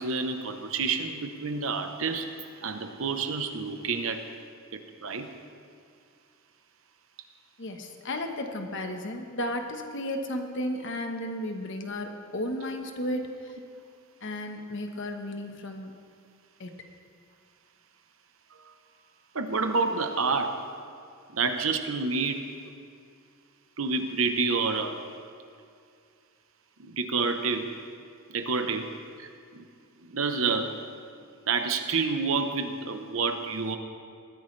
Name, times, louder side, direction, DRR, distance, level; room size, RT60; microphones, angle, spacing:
voice 1, 0.0-2.3 2.6-4.3 4.7-5.3 13.0-13.2 18.6-18.7 19.3-20.6 21.3-22.5 23.8-25.0 26.8-27.7 28.3-28.9 29.2-29.7 30.0-30.8 31.5-33.8, right 4 dB, 65° right, 6 dB, 1.0 m, -29 dB
voice 2, 7.6-13.3 14.2-16.0 16.6-16.8, left 1 dB, 55° left, 4 dB, 1.3 m, -34 dB
20.5 x 14.5 x 3.4 m, 2.3 s
head